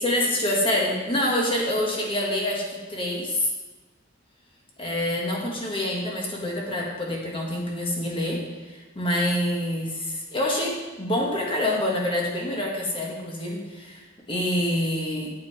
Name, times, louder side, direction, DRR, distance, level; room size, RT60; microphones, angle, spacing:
voice 1, 0.0-3.5 4.8-8.4 8.7-15.3, left 1 dB, 25° left, -2 dB, 1.5 m, -26 dB
8.7 x 7.6 x 4.7 m, 1.2 s
head